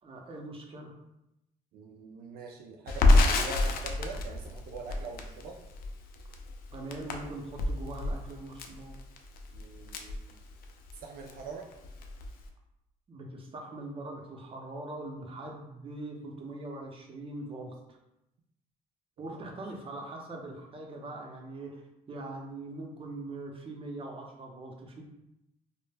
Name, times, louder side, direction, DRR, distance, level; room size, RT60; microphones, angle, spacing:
voice 1, 0.0-0.9 6.7-8.9 13.1-18.0 19.2-21.8 22.1-25.0, right 2 dB, 35° right, 0 dB, 0.6 m, -42 dB
voice 2, 1.7-5.6 9.5-10.4 10.9-11.7 19.3-19.6, right 4 dB, 80° right, 1 dB, 0.4 m, -43 dB
Crackle, 2.9-10.9 11.3-11.4 11.7-12.5, left 2 dB, 70° left, 0.4 m, -28 dB
2.1 x 2.0 x 3.2 m, 0.86 s
cardioid pair, 85°, 16 cm